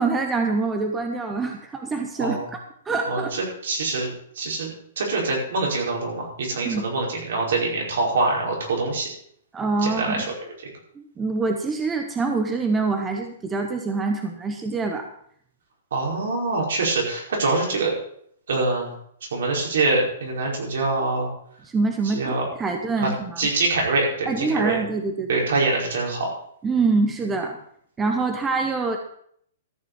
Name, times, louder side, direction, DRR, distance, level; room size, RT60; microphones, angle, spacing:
voice 1, 0.0-2.4 2.9-3.4 6.6-6.8 9.5-10.2 11.0-15.1 21.6-23.4 24.3-25.4 26.6-27.6 28.0-29.0, right 3 dB, 10° right, 4 dB, 0.7 m, -25 dB
voice 2, 2.2-2.5 3.0-4.7 5.0-9.1 9.8-10.2 15.9-17.9 18.5-18.9 19.3-21.3 22.1-22.4 23.0-23.1 23.4-24.8 25.3-26.3, right 3 dB, 65° right, -1 dB, 5.0 m, -24 dB
13.5 x 6.7 x 6.9 m, 0.66 s
hypercardioid pair, 180°, 0 cm